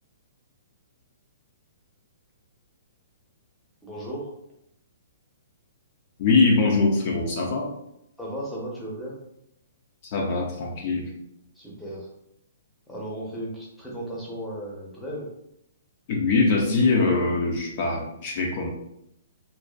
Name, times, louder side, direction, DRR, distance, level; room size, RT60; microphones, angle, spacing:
voice 1, 3.8-4.3 8.2-9.2 11.5-12.1 12.9-15.3, equal, ahead, -6 dB, 0.7 m, -35 dB
voice 2, 6.2-7.7 10.0-11.1 16.1-18.7, left 3 dB, 45° left, -1 dB, 0.4 m, -22 dB
2.4 x 2.3 x 2.2 m, 0.79 s
hypercardioid pair, 150°, 0 cm